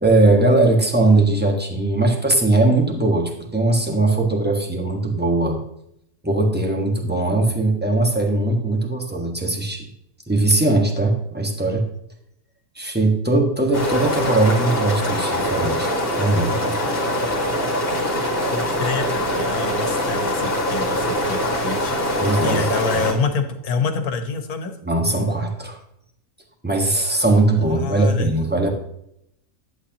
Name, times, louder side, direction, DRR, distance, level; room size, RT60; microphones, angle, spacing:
voice 1, 0.0-5.6 6.2-9.9 10.3-11.8 12.7-16.8 22.2-22.7 23.0-23.1 24.8-25.8 26.6-28.7, right 2 dB, 5° right, 2 dB, 1.4 m, -20 dB
sound 1, 13.7-23.1, left 1 dB, 40° left, 2.3 m, -23 dB
voice 2, 18.5-24.8 27.6-28.3, left 4 dB, 80° left, 7 dB, 1.6 m, -27 dB
11.0 x 8.6 x 3.0 m, 0.76 s
omnidirectional pair, 1.5 m